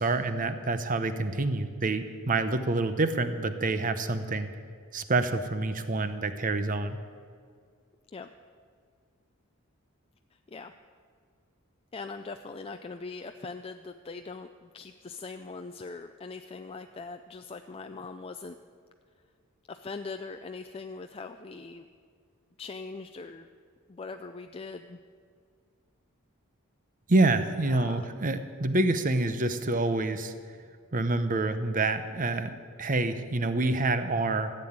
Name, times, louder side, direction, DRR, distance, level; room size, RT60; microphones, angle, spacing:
voice 1, 0.0-4.5 4.9-7.0 27.1-30.3 30.9-34.5, right 2 dB, 40° right, 10 dB, 0.8 m, -27 dB
voice 2, 10.3-10.7 11.9-18.6 19.7-21.9 22.6-23.5 23.9-25.0 27.7-28.1, left 4 dB, 25° left, 6 dB, 0.4 m, -41 dB
14.5 x 7.8 x 8.8 m, 2.1 s
head